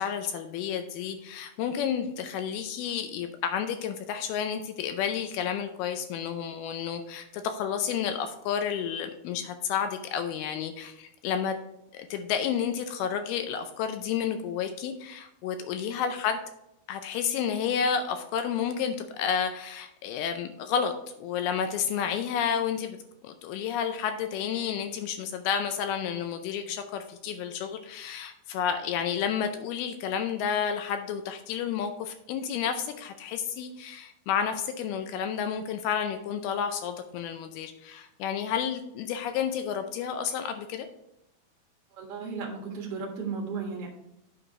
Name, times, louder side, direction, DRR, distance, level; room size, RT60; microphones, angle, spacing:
voice 1, 0.0-11.6 11.9-16.4 16.9-20.9 21.2-23.0 23.2-40.9, left 8 dB, 80° left, 7 dB, 2.3 m, -31 dB
voice 2, 41.9-43.9, right 5 dB, 55° right, 0 dB, 1.7 m, -35 dB
8.8 x 4.8 x 4.8 m, 0.83 s
omnidirectional pair, 4.8 m